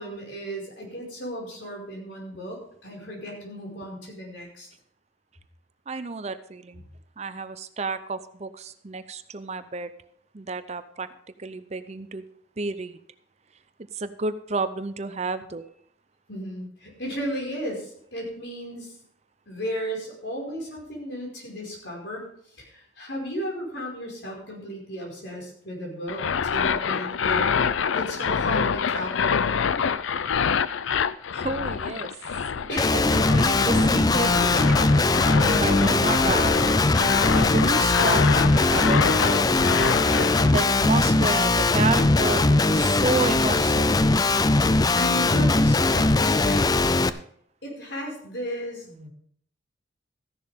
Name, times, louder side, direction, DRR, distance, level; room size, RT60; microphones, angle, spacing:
voice 1, 0.0-4.7 16.3-18.9 19.5-22.3 22.6-27.7 27.9-29.7 32.7-33.0 45.0-46.8 47.6-49.1, equal, 65° left, -1 dB, 5.2 m, -34 dB
voice 2, 5.9-6.8 7.2-9.9 10.3-11.1 11.4-12.2 12.6-13.0 13.9-15.6 31.3-32.1 32.5-34.9 35.5-36.6 37.3-39.7 40.5-43.9, right 3 dB, 35° right, 11 dB, 0.6 m, -31 dB
sound 1, 26.1-40.5, left 6 dB, 90° left, 0.5 m, -26 dB
Guitar, 32.8-47.1, left 2 dB, 20° left, 0.4 m, -20 dB
14.5 x 11.0 x 3.6 m, 0.63 s
head